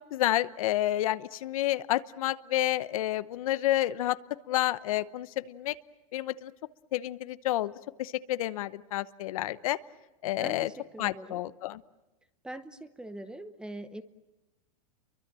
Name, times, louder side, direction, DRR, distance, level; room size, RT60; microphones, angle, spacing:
voice 1, 0.1-4.2 4.5-5.7 6.1-6.5 6.9-7.7 8.0-9.8 10.2-10.7 11.0-11.8, left 14 dB, 70° left, 14 dB, 0.9 m, -29 dB
voice 2, 10.4-11.4 12.4-14.0, right 1 dB, 5° right, 12 dB, 0.9 m, -42 dB
30.0 x 23.5 x 7.6 m, 1.0 s
supercardioid pair, 150°, 19 cm